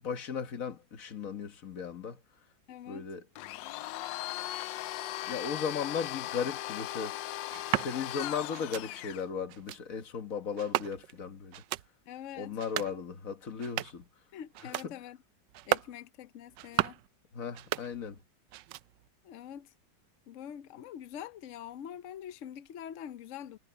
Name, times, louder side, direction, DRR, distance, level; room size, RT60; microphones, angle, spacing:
voice 1, 0.0-2.2 2.9-3.2 5.3-7.2 7.8-11.6 12.4-14.1 14.8-14.9 17.3-18.2, left 6 dB, 50° left, 1.7 m, -36 dB
voice 2, 2.7-3.1 12.1-12.6 14.3-15.2 15.7-17.0 19.2-19.7 20.3-23.6, left 10 dB, 70° left, 0.7 m, -44 dB
Domestic sounds home sounds, 3.4-9.2, left 15 dB, 85° left, 1.3 m, -38 dB
sound 1, 7.5-7.9 8.5-8.9 9.5-9.8 10.6-11.2 11.5-11.9 12.5-13.0 13.5-14.1 14.5-14.9 15.5-16.0 16.5-17.1 17.5-18.2 18.5-19.1, right 15 dB, 80° right, 1.2 m, -35 dB
omnidirectional pair, 2.0 m